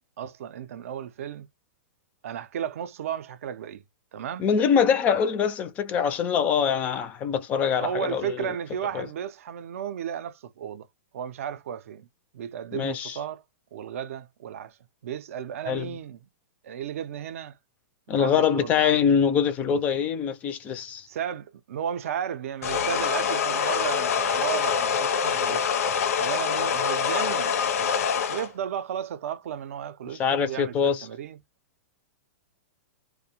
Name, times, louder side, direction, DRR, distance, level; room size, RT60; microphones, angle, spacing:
voice 1, 0.2-1.5 2.2-3.8 4.1-4.4 7.8-10.9 11.1-12.1 12.3-13.4 13.7-14.8 15.0-16.2 16.6-17.6 18.1-19.0 21.1-25.8 26.2-27.9 28.3-31.4, right 9 dB, 65° right, 0.4 m, -34 dB
voice 2, 4.4-8.5 8.9-9.0 12.7-13.2 15.7-15.9 18.1-21.1 30.2-31.0, left 7 dB, 20° left, 0.3 m, -24 dB
sound 1, 22.6-28.5, left 7 dB, 80° left, 0.5 m, -25 dB
2.4 x 2.0 x 2.8 m
hypercardioid pair, 160°, 8 cm